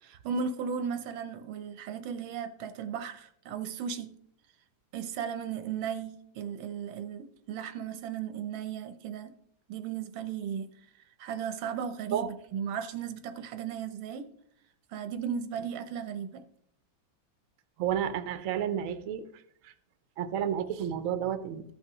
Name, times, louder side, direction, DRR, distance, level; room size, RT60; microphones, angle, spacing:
voice 1, 0.0-4.2 4.9-9.3 9.7-10.7 11.2-14.2 14.9-16.5, right 7 dB, 85° right, 1.5 m, -36 dB
voice 2, 17.8-19.3 19.6-19.7 20.2-21.6, right 9 dB, 70° right, 0.8 m, -31 dB
14.0 x 5.6 x 3.0 m
omnidirectional pair, 2.1 m